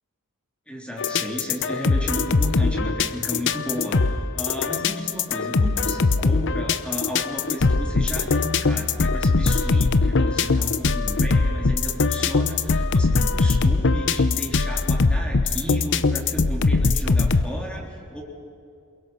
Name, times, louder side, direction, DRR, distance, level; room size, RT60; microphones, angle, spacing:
voice 1, 0.7-18.2, equal, 5° left, -1 dB, 3.5 m, -34 dB
sound 1, 1.0-17.4, left 3 dB, 55° left, 0.7 m, -21 dB
28.0 x 22.0 x 5.7 m, 2.4 s
head